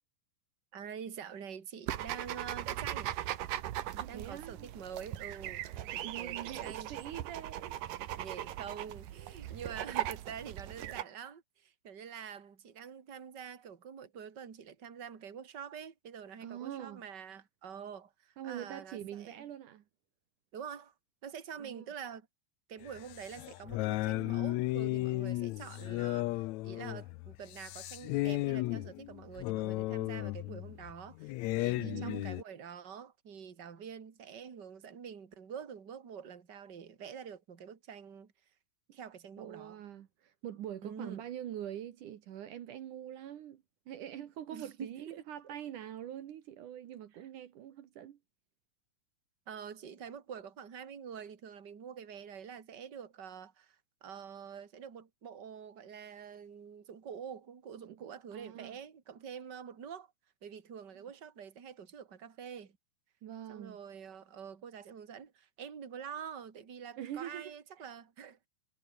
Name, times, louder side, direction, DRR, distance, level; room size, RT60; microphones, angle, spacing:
voice 1, 0.7-3.2 4.1-6.9 8.1-19.4 20.5-20.9 21.2-22.3 22.7-31.3 31.6-38.3 38.9-39.8 40.8-41.2 44.5-45.2 47.1-47.3 49.5-60.1 60.4-62.8 63.5-68.5, right 7 dB, 35° right, 2.8 m, -46 dB
sound 1, 1.9-11.0, right 13 dB, 85° right, 2.9 m, -39 dB
voice 2, 3.9-4.7 5.9-7.8 9.4-9.6 16.4-17.0 18.4-19.8 21.6-21.9 31.7-32.3 39.4-48.2 57.8-58.8 63.2-63.8 67.0-67.5, right 11 dB, 70° right, 2.9 m, -44 dB
sound 2, 22.8-32.4, left 19 dB, 85° left, 1.6 m, -35 dB
omnidirectional pair, 3.8 m